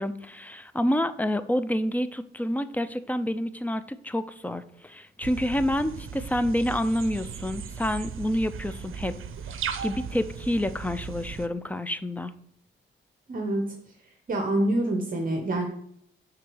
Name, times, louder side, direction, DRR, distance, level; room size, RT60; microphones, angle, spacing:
voice 1, 0.0-9.2 9.5-12.3, left 1 dB, 5° left, 13 dB, 0.4 m, -28 dB
sound 1, 5.2-11.5, right 7 dB, 75° right, 0.6 m, -37 dB
voice 2, 13.3-13.7 14.3-15.7, right 1 dB, 40° right, 3 dB, 0.9 m, -26 dB
6.2 x 3.8 x 6.2 m, 0.68 s
wide cardioid pair, 120°, 21 cm